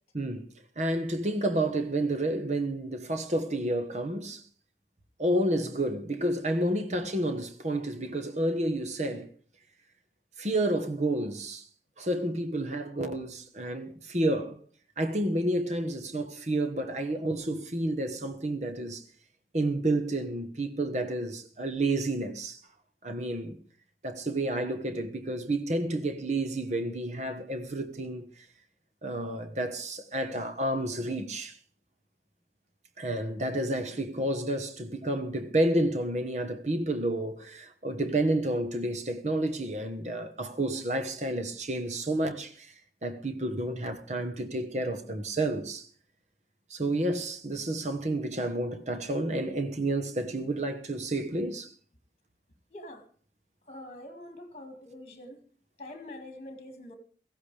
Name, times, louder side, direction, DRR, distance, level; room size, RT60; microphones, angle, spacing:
voice 1, 0.1-0.5 0.8-4.4 5.2-9.3 10.4-11.6 12.0-14.6 15.0-19.0 19.5-22.6 23.0-23.6 24.0-28.3 29.0-31.6 33.0-42.7 43.0-45.9 46.7-51.7, right 1 dB, 40° right, 1.2 m, -30 dB
voice 2, 52.7-53.1 53.7-55.5 55.8-57.0, left 1 dB, 35° left, 2.2 m, -45 dB
17.0 x 14.5 x 3.4 m
head